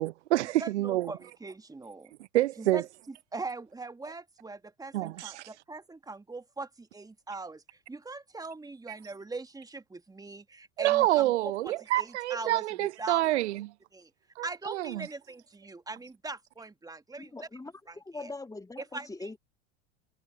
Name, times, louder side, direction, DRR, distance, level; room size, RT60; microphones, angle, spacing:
voice 1, 0.0-1.1 2.3-2.8 4.9-5.4 10.8-13.7 14.4-15.1, right 16 dB, 75° right, 0.5 m, -27 dB
voice 2, 0.6-2.1 2.6-2.8 3.3-13.2 13.9-14.1 14.4-17.3 17.9-18.3 18.8-19.3, right 3 dB, 10° right, 1.7 m, -41 dB
voice 3, 17.2-19.4, left 3 dB, 10° left, 2.5 m, -42 dB
hypercardioid pair, 80°, 34 cm